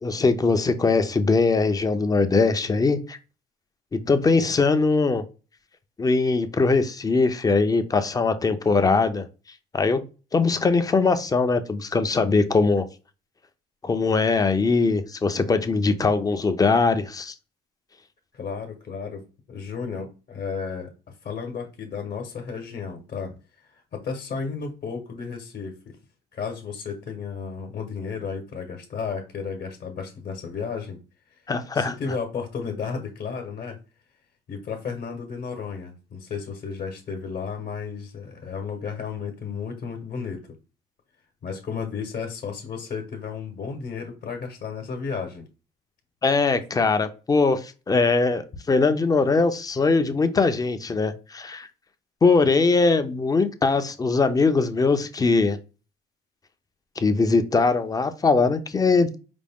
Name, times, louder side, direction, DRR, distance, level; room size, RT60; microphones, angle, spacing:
voice 1, 0.0-3.2 3.9-5.2 6.0-9.3 9.7-10.0 10.3-12.9 13.8-17.3 31.5-31.9 46.2-51.7 52.2-55.6 57.0-59.2, left 4 dB, 20° left, 9 dB, 0.5 m, -21 dB
voice 2, 18.3-19.2 19.5-20.9 21.2-23.3 23.6-26.0 26.3-31.0 31.7-33.8 34.5-40.5 41.4-45.5, left 5 dB, 50° left, 3 dB, 1.1 m, -33 dB
5.0 x 2.2 x 3.5 m, 0.33 s
cardioid pair, 110°, 17 cm